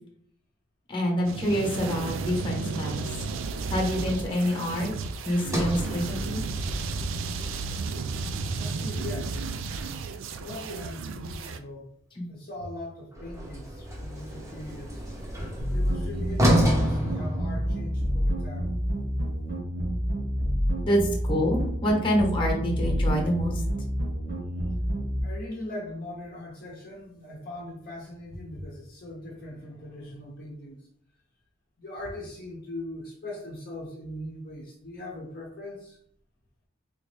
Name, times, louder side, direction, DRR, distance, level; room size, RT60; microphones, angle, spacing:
voice 1, 0.9-3.0 3.7-4.9 5.2-6.4 12.2-12.3 20.8-21.0 21.3-23.5, equal, 25° left, 0 dB, 1.0 m, -26 dB
sound 1, 1.2-11.6, right 4 dB, 90° right, 0.3 m, -33 dB
Sliding door, 5.4-9.6 13.1-18.1, equal, 15° right, 0.7 m, -30 dB
voice 2, 8.5-9.5 10.4-11.9 12.3-15.0 15.7-18.7 25.2-30.8 31.8-36.0, left 1 dB, 50° left, -3 dB, 0.7 m, -40 dB
sound 2, 15.6-25.2, equal, 60° right, 1.3 m, -28 dB
3.4 x 2.6 x 3.2 m, 0.66 s
head